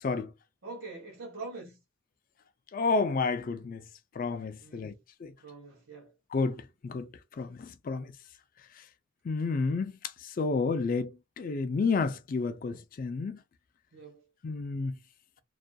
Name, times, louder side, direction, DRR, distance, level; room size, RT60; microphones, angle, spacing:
voice 1, 0.6-1.8 4.6-5.0 5.4-6.1 13.9-14.2, right 3 dB, 80° right, 0.9 m, -44 dB
voice 2, 2.7-3.8 4.2-4.9 5.2-5.3 6.3-7.1 7.4-8.1 9.3-10.0 10.2-11.1 11.4-13.4 14.4-15.0, left 4 dB, 40° left, 0.3 m, -30 dB
2.4 x 2.2 x 2.6 m
head